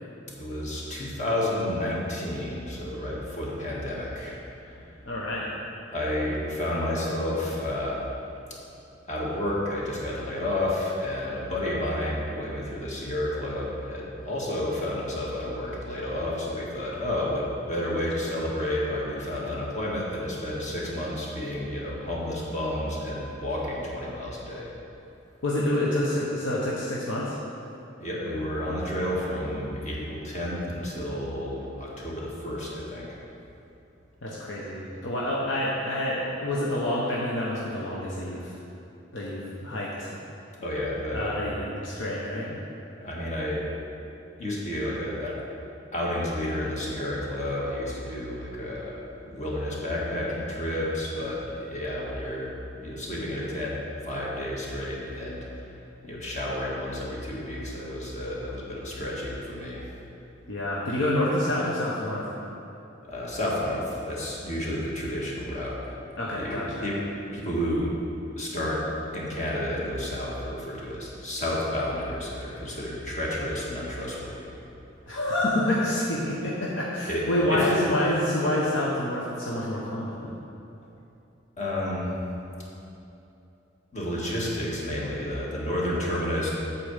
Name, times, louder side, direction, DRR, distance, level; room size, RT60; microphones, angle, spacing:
voice 1, 0.4-4.8 5.9-8.0 8.5-8.6 9.1-24.7 28.0-33.2 40.6-41.3 43.0-43.6 44.4-45.4 45.9-49.0 49.3-53.8 54.0-55.8 56.0-59.9 63.1-66.0 66.3-67.0 67.3-67.9 68.4-68.8 69.1-74.5 77.0-77.7 81.6-82.2 83.9-86.5, left 1 dB, 40° left, -4 dB, 1.7 m, -31 dB
voice 2, 5.1-5.5 25.4-27.4 34.2-38.5 39.1-40.1 41.1-42.6 60.5-62.2 66.2-66.9 75.1-80.3, left 1 dB, 85° left, -5 dB, 1.1 m, -27 dB
8.4 x 4.4 x 7.2 m, 2.8 s
head